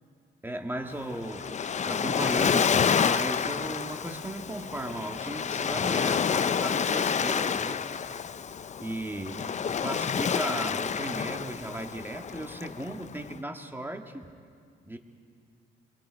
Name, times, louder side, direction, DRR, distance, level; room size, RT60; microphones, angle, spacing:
voice 1, 0.4-1.5 1.9-2.7 3.0-7.8 8.8-9.4 9.8-14.3 14.8-15.0, right 1 dB, 10° right, 4 dB, 1.8 m, -36 dB
Waves surf, 0.9-13.3, left 7 dB, 35° left, 0.6 m, -29 dB
28.0 x 22.0 x 5.2 m, 2.2 s
cardioid pair, 90°, 20 cm